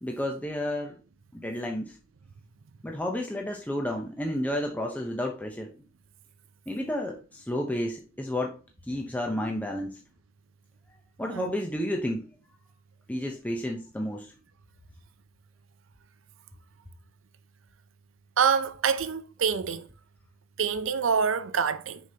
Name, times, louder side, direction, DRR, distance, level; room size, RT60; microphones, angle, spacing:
voice 1, 0.0-1.0 1.3-2.0 2.8-5.8 6.7-8.6 8.9-10.0 11.2-12.2 13.1-14.3, left 1 dB, 10° left, 0.6 m, -31 dB
voice 2, 18.4-19.9 20.6-22.0, right 6 dB, 80° right, 0.5 m, -26 dB
6.4 x 5.3 x 2.8 m
head